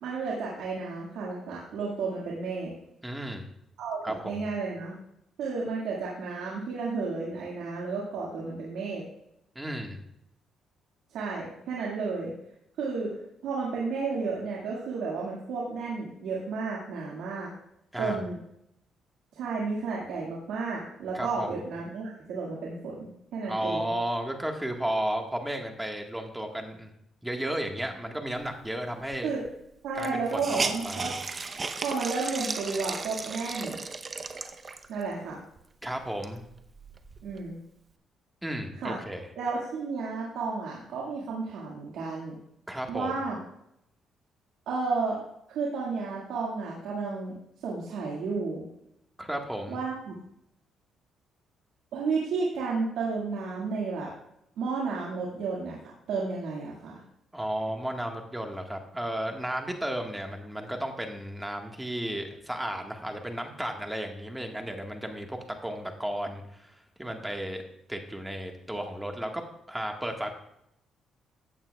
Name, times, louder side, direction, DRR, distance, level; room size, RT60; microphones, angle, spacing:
voice 1, 0.0-2.7 3.8-5.0 5.4-9.0 11.1-12.3 12.8-13.1 13.4-17.5 18.0-18.4 19.3-23.9 29.2-29.4 29.8-31.1 31.8-33.8 34.9-35.4 37.2-37.6 38.8-38.9 39.4-42.4 42.9-43.4 44.7-45.2 45.5-47.3 47.6-48.6 49.7-50.2 51.9-54.1 54.6-55.8 56.1-57.0, right 4 dB, 85° right, -4 dB, 2.0 m, -32 dB
voice 2, 3.0-3.4 4.0-4.4 9.5-10.0 17.9-18.2 21.1-21.6 23.4-26.9 27.2-29.3 29.9-31.1 35.8-36.4 38.4-39.3 42.7-43.2 49.2-49.8 57.3-67.6 67.9-69.4 69.7-70.3, right 1 dB, 10° right, 3 dB, 1.6 m, -34 dB
Hiss, 29.1-29.2 29.4-29.5 30.0-35.0 35.6-35.7 36.0-37.4, right 4 dB, 35° right, 0.8 m, -35 dB
14.5 x 8.8 x 2.4 m, 0.78 s
cardioid pair, 90°, 0 cm